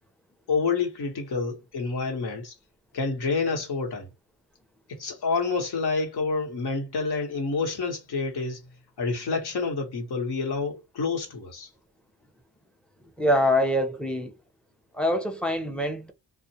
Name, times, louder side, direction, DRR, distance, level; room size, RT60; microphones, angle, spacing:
voice 1, 0.5-2.5 2.9-4.1 4.9-8.6 9.0-11.7, left 4 dB, 60° left, 1.2 m, -28 dB
voice 2, 13.2-14.3 14.9-16.1, left 1 dB, ahead, 0.7 m, -24 dB
2.3 x 2.2 x 2.8 m
supercardioid pair, 55°, 43 cm